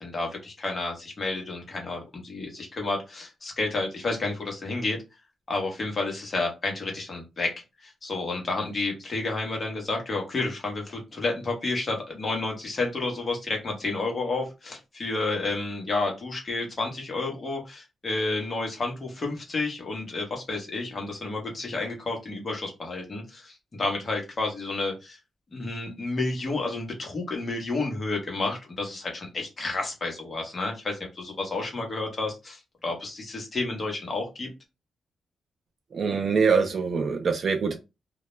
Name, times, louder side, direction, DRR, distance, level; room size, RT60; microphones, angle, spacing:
voice 1, 0.0-5.0 5.5-7.5 7.8-25.2 25.5-34.5, left 3 dB, 30° left, 0.8 m, -30 dB
voice 2, 35.9-37.7, right 5 dB, 40° right, 0.3 m, -24 dB
2.2 x 2.1 x 2.9 m
wide cardioid pair, 180°, 0 cm